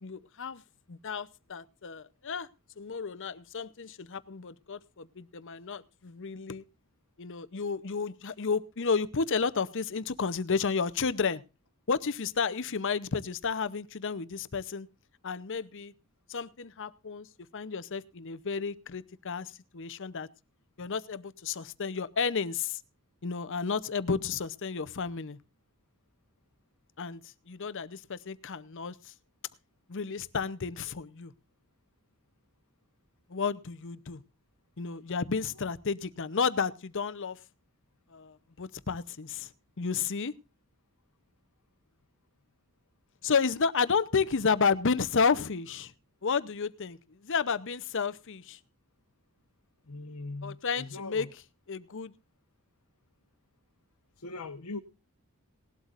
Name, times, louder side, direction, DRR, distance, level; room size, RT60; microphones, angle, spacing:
voice 1, 0.0-0.6 0.9-2.5 2.8-6.6 7.2-11.4 11.9-14.9 15.2-15.9 16.3-17.3 17.5-20.3 20.8-22.8 23.2-25.4 27.0-29.1 29.9-31.3 33.3-34.2 34.8-37.4 38.1-39.5 39.8-40.3 43.2-45.9 46.2-48.6 50.4-51.3 51.7-52.1, left 5 dB, 55° left, 0.8 m, -32 dB
voice 2, 49.8-51.3 54.2-54.8, left 3 dB, 80° left, 1.1 m, -40 dB
19.0 x 12.0 x 2.5 m
head